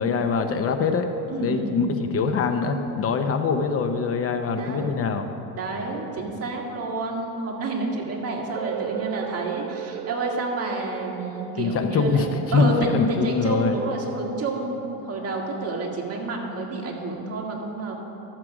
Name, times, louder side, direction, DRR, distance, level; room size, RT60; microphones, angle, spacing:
voice 1, 0.0-1.1 1.4-5.3 11.6-13.8, left 5 dB, 35° left, 7 dB, 0.7 m, -23 dB
voice 2, 1.3-1.9 4.6-5.0 5.5-12.2 12.5-18.0, right 2 dB, 35° right, -1 dB, 1.8 m, -29 dB
sound 1, 8.5-14.4, right 12 dB, 50° right, 0.4 m, -37 dB
12.5 x 7.5 x 4.9 m, 3.0 s
supercardioid pair, 120°, 43 cm